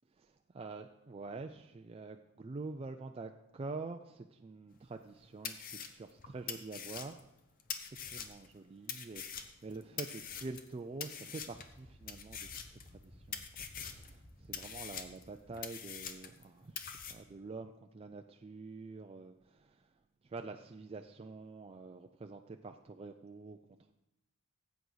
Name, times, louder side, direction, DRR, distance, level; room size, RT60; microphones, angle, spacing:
voice 1, 0.2-7.3 8.0-19.9 20.2-23.6, right 3 dB, 25° right, 5 dB, 0.3 m, -47 dB
sound 1, 4.9-5.0 5.4-8.5 8.9-10.7 11.0-11.7 12.1-13.0 13.3-14.1 14.5-16.4 16.8-17.1, left 7 dB, 40° left, 0.8 m, -44 dB
sound 2, 11.5-16.6, equal, 15° left, 1.0 m, -58 dB
16.0 x 8.2 x 3.9 m, 0.94 s
head